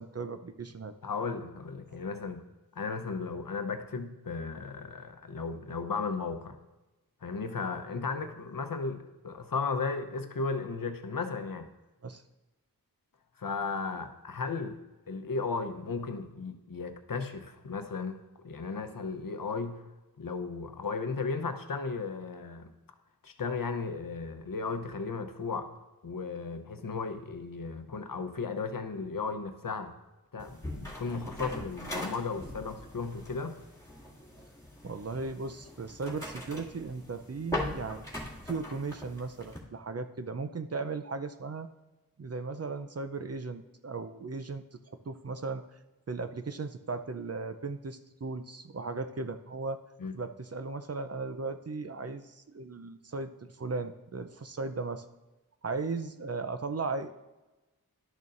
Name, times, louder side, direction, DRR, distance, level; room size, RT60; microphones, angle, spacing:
voice 1, 0.0-0.9 12.0-12.2 34.8-38.0 38.5-41.7 42.2-45.6 46.1-49.8 50.1-53.3 53.6-55.0 55.6-57.1, right 4 dB, 40° right, 9 dB, 0.6 m, -37 dB
voice 2, 1.0-2.5 2.7-6.6 7.2-11.7 13.4-14.8 15.1-18.2 18.4-19.8 20.2-22.7 23.2-25.7 26.0-30.0 30.3-33.6 50.0-50.1, left 4 dB, 65° left, 7 dB, 0.8 m, -35 dB
sound 1, 30.4-39.6, left 1 dB, 10° left, 2.2 m, -41 dB
12.0 x 6.7 x 2.5 m, 1.1 s
wide cardioid pair, 65°, 37 cm